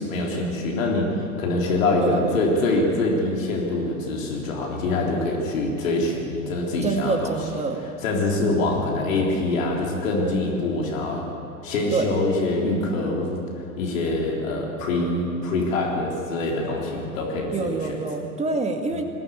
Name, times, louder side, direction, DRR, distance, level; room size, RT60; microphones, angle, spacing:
voice 1, 0.0-7.4 8.0-11.3 11.6-13.4 13.8-18.0, left 2 dB, 60° left, -1 dB, 3.9 m, -24 dB
voice 2, 6.8-7.8 11.9-12.1 17.5-19.0, right 4 dB, 15° right, 5 dB, 2.1 m, -26 dB
21.5 x 16.0 x 8.5 m, 2.8 s
figure-of-eight pair, 90°, 44 cm